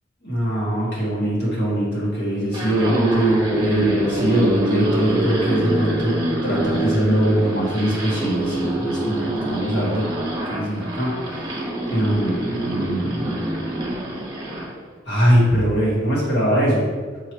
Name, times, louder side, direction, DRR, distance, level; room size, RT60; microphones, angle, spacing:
voice 1, 0.2-10.1 10.5-11.5 11.9-13.4 15.1-16.8, right 1 dB, 60° left, -6 dB, 1.6 m, -22 dB
sound 1, 2.4-14.7, right 1 dB, 25° right, 1.1 m, -25 dB
6.8 x 3.1 x 4.5 m, 1.5 s
head